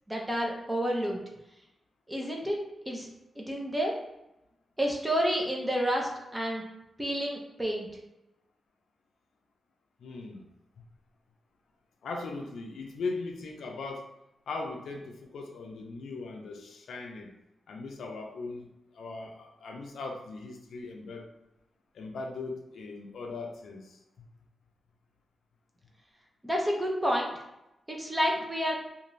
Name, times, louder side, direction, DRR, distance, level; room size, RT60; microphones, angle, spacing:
voice 1, 0.1-1.2 2.1-3.1 3.4-3.9 4.8-6.6 7.0-7.9 26.4-27.3 27.9-28.8, equal, 15° right, -1 dB, 0.7 m, -29 dB
voice 2, 10.0-10.4 10.8-10.9 12.0-14.0 14.5-17.3 17.7-21.3 21.9-24.0, left 3 dB, 85° left, 1 dB, 0.5 m, -39 dB
2.5 x 2.5 x 3.1 m, 0.91 s
cardioid pair, 75°, 0 cm